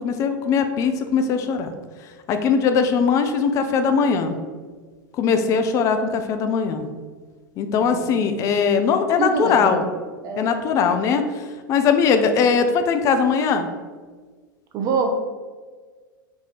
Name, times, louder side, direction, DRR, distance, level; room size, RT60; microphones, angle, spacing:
voice 1, 0.0-1.7 2.3-4.3 5.1-6.9 7.6-9.8 10.4-13.7, left 6 dB, 30° left, 7 dB, 0.4 m, -20 dB
voice 2, 7.8-8.1 9.2-9.9 10.2-10.6 14.7-15.1, right 5 dB, 30° right, 3 dB, 0.7 m, -25 dB
4.5 x 2.7 x 4.1 m, 1.5 s
figure-of-eight pair, 90°, 11 cm